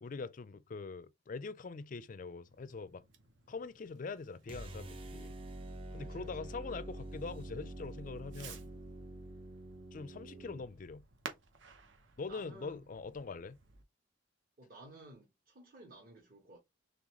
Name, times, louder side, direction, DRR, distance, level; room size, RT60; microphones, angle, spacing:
voice 1, 0.0-3.0 3.5-5.4 5.9-8.7 9.9-11.0 12.2-13.6, left 4 dB, 40° left, 0.4 m, -43 dB
Fireworks, 2.4-13.8, right 5 dB, 65° right, 0.8 m, -56 dB
sound 1, 4.5-10.7, right 1 dB, 25° right, 0.5 m, -46 dB
voice 2, 6.0-6.5 10.1-10.6 12.3-12.8 14.6-16.6, right 2 dB, 45° right, 1.2 m, -55 dB
3.9 x 3.4 x 3.0 m
head